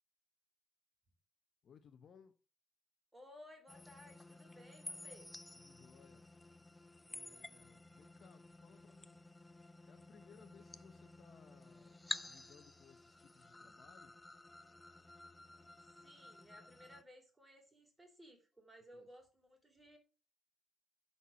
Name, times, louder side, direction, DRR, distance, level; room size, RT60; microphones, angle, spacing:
voice 1, 1.6-2.4 5.5-6.3 6.7-6.8 7.1-9.2 9.9-14.1 18.9-19.1, left 7 dB, 45° left, 0.9 m, -64 dB
voice 2, 3.1-5.3 16.0-20.0, equal, 10° right, 3.1 m, -59 dB
sound 1, 3.7-17.0, left 2 dB, 10° left, 0.5 m, -52 dB
10.0 x 4.3 x 6.2 m
cardioid pair, 130°, 0 cm